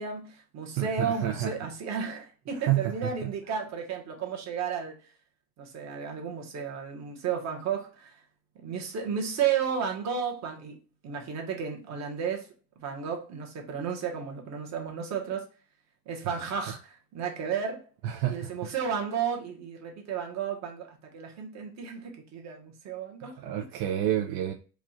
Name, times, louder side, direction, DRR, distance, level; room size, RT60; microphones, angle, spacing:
voice 1, 0.0-5.1 5.6-8.2 8.6-15.5 16.0-17.9 18.3-23.4, right 7 dB, 45° right, 1.3 m, -33 dB
voice 2, 0.8-1.5 2.7-2.9 3.2-3.3 16.2-16.4 18.0-18.5 23.4-24.5, right 12 dB, 75° right, 0.7 m, -29 dB
4.7 x 2.4 x 4.3 m
cardioid pair, 165°, 37 cm